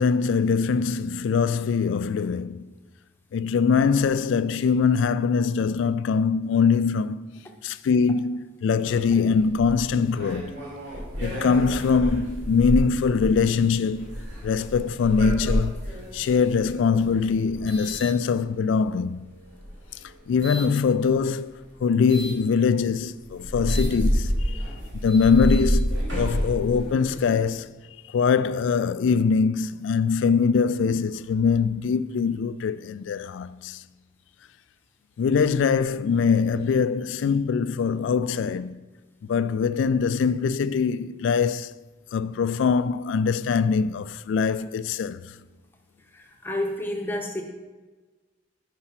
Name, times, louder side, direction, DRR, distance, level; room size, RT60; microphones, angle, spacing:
voice 1, 0.0-2.7 3.3-10.5 11.2-14.2 14.4-15.8 16.1-19.3 20.3-21.6 21.8-24.6 25.0-27.7 28.1-33.8 35.2-38.8 39.3-41.7 42.1-45.2, left 5 dB, 80° left, 0.3 m, -23 dB
sound 1, 8.8-18.8 19.5-20.7 22.1-22.4 22.9-23.0 23.3-27.4, equal, 75° right, 2.1 m, -29 dB
voice 2, 46.1-47.4, left 1 dB, 10° left, 0.6 m, -30 dB
5.6 x 4.9 x 5.7 m
head